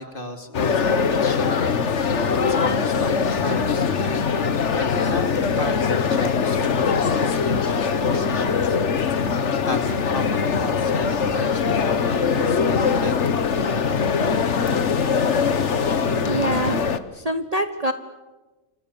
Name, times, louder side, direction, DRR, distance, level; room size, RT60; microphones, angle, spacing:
voice 1, 0.0-1.7 2.1-4.4 4.7-8.8 9.6-14.2, left 2 dB, 40° left, 6 dB, 2.8 m, -34 dB
sound 1, 0.5-17.0, left 5 dB, 55° left, 1.5 m, -22 dB
voice 2, 16.2-16.8 17.1-17.9, right 2 dB, 30° right, 8 dB, 1.2 m, -24 dB
29.0 x 26.5 x 7.0 m, 1.2 s
omnidirectional pair, 1.5 m